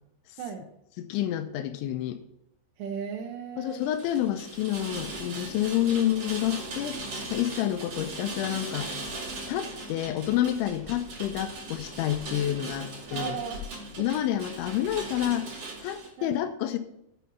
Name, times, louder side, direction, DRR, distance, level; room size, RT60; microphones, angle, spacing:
voice 1, 1.0-2.2 3.6-7.0 7.3-8.9 9.5-13.3 14.0-15.5 15.8-16.8, left 12 dB, 80° left, 9 dB, 3.0 m, -29 dB
voice 2, 2.8-3.8 4.8-5.1 13.1-14.1 15.3-15.4 16.2-16.4, right 7 dB, 80° right, 0 dB, 3.4 m, -37 dB
Rain, 3.7-16.1, right 2 dB, 40° right, 2.7 m, -39 dB
10.0 x 7.4 x 5.5 m, 0.80 s
omnidirectional pair, 5.6 m